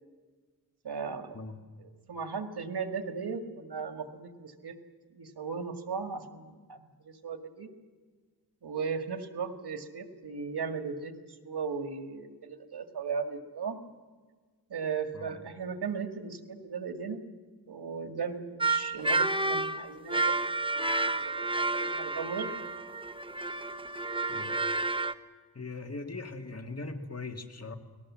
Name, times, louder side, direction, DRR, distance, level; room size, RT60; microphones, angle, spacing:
voice 1, 0.8-1.4 1.8-4.8 5.1-7.7 8.6-13.8 14.7-17.2 17.7-20.4 20.7-22.6, right 5 dB, 90° right, 7 dB, 2.0 m, -37 dB
sound 1, 18.6-25.1, right 2 dB, 15° right, 0.9 m, -30 dB
voice 2, 25.5-27.8, left 3 dB, 40° left, 6 dB, 2.2 m, -40 dB
29.5 x 19.5 x 7.5 m, 1.4 s
wide cardioid pair, 75°, 38 cm